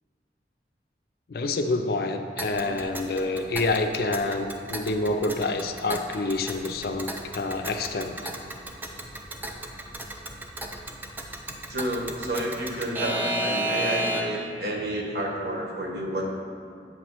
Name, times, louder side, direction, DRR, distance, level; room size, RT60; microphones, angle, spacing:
voice 1, 1.3-8.2, left 2 dB, 55° left, 6 dB, 0.4 m, -27 dB
Alarm / Clock, 2.4-14.5, right 1 dB, 10° right, 0.3 m, -34 dB
voice 2, 11.7-16.3, right 1 dB, 65° right, -1 dB, 1.0 m, -30 dB
7.7 x 3.0 x 6.1 m, 2.2 s
head